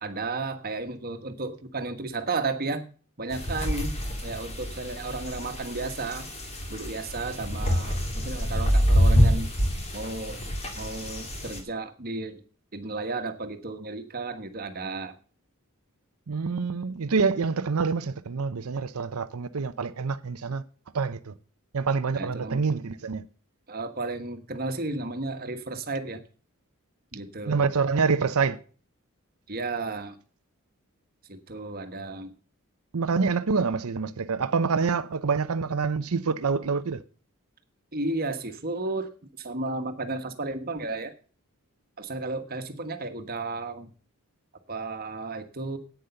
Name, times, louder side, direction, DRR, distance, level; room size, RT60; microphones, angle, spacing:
voice 1, 0.0-2.9 3.2-6.3 6.7-8.0 8.2-9.5 9.9-10.4 10.8-12.4 12.7-15.1 22.1-22.6 23.7-26.2 27.1-27.7 29.5-30.2 31.3-32.3 37.9-39.1 39.4-41.1 42.0-43.9 44.7-45.8, right 3 dB, 45° right, 1.4 m, -33 dB
sound 1, 3.3-11.6, equal, 30° left, 2.4 m, -26 dB
voice 2, 16.3-20.6 20.9-21.3 21.7-23.2 27.5-28.6 32.9-37.0, right 5 dB, 85° right, 0.6 m, -26 dB
10.0 x 9.2 x 6.8 m
head